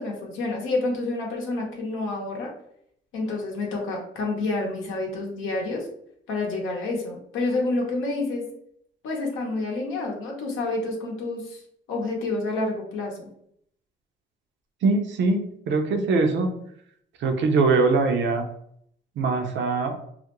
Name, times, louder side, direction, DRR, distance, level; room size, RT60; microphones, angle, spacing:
voice 1, 0.0-2.5 3.1-5.9 6.3-8.5 9.0-11.6 11.9-13.3, left 2 dB, 90° left, -1 dB, 0.7 m, -28 dB
voice 2, 14.8-16.5 17.2-18.5 19.2-20.0, right 3 dB, 70° right, 5 dB, 0.5 m, -22 dB
2.4 x 2.1 x 2.9 m, 0.69 s
cardioid pair, 90°, 20 cm